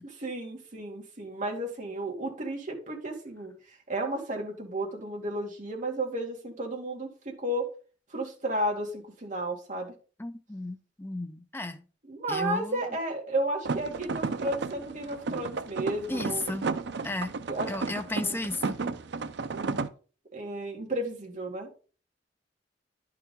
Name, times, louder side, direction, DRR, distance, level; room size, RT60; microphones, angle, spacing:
voice 1, 0.0-7.6 8.1-9.9 12.1-16.4 17.5-17.7 18.1-18.4 19.5-19.8 20.3-21.7, right 1 dB, 45° right, 2.2 m, -33 dB
voice 2, 10.2-11.8 12.3-12.8 16.1-16.7 17.0-17.3 17.7-18.8, left 2 dB, 10° left, 0.5 m, -34 dB
sound 1, 13.7-19.9, right 4 dB, 65° right, 0.5 m, -33 dB
11.0 x 4.8 x 3.8 m
head